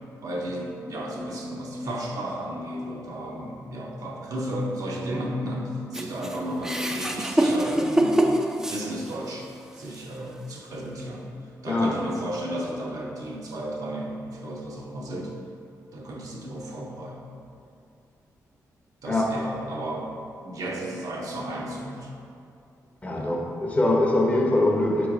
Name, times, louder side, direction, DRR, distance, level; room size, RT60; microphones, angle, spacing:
voice 1, 0.2-8.3 8.7-9.5 9.7-11.3 11.6-15.3 15.9-17.4 19.0-20.1 20.4-22.1 23.1-23.3, right 1 dB, 65° right, -2 dB, 0.7 m, -33 dB
sound 1, 5.9-9.4 9.9-10.0 11.0-11.1, right 1 dB, 10° right, 0.3 m, -24 dB
voice 2, 23.0-25.1, left 2 dB, 20° left, 0 dB, 0.6 m, -23 dB
4.4 x 3.1 x 3.7 m, 2.5 s
cardioid pair, 75°, 7 cm